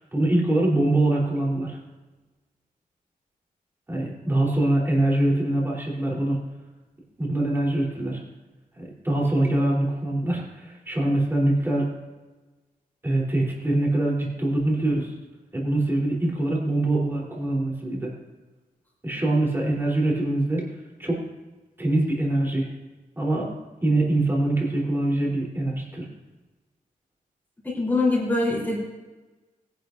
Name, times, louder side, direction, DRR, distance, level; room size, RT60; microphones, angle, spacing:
voice 1, 0.1-1.8 3.9-6.4 7.2-8.2 8.8-11.9 13.0-15.1 15.5-18.1 19.0-20.6 21.0-21.2 21.8-22.7 23.2-23.5 23.8-26.1, right 1 dB, 15° right, -4 dB, 3.7 m, -23 dB
voice 2, 27.6-28.8, left 2 dB, 10° left, -8 dB, 3.8 m, -23 dB
21.5 x 11.0 x 2.7 m, 1.2 s
wide cardioid pair, 160°, 15 cm